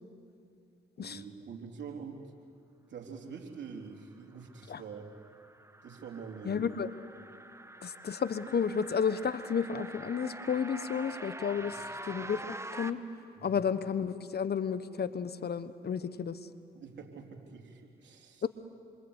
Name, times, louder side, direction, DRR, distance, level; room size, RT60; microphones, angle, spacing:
voice 1, 1.0-2.2 2.9-5.1 5.8-6.6 11.7-11.8 13.4-13.6 16.7-18.4, right 6 dB, 65° right, 2 dB, 3.6 m, -45 dB
sound 1, 4.6-12.9, right 1 dB, 15° right, 1.6 m, -45 dB
voice 2, 6.4-6.9 7.8-12.4 12.7-13.0 13.4-16.4 18.4-18.5, left 6 dB, 55° left, 13 dB, 1.2 m, -32 dB
27.0 x 25.5 x 8.2 m, 2.4 s
supercardioid pair, 45°, 20 cm